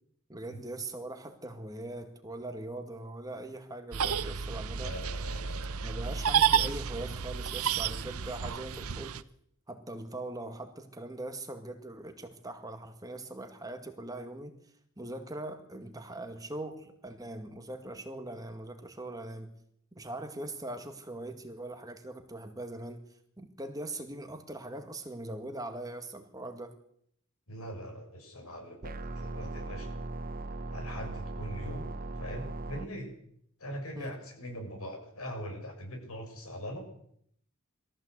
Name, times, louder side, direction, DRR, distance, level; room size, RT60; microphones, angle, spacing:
voice 1, 0.3-5.0 5.8-9.2 9.7-14.6 15.0-19.5 20.0-23.1 23.4-26.8 33.9-34.1, right 2 dB, 15° right, 6 dB, 2.0 m, -41 dB
sound 1, 3.9-9.2, right 7 dB, 85° right, 0.8 m, -30 dB
voice 2, 4.8-5.9 27.5-30.0 30.7-31.9 32.1-33.1 33.6-36.9, equal, 80° left, 4 dB, 6.9 m, -42 dB
sound 2, 28.8-32.8, right 2 dB, 40° right, 0.9 m, -38 dB
21.5 x 15.0 x 8.1 m, 0.68 s
head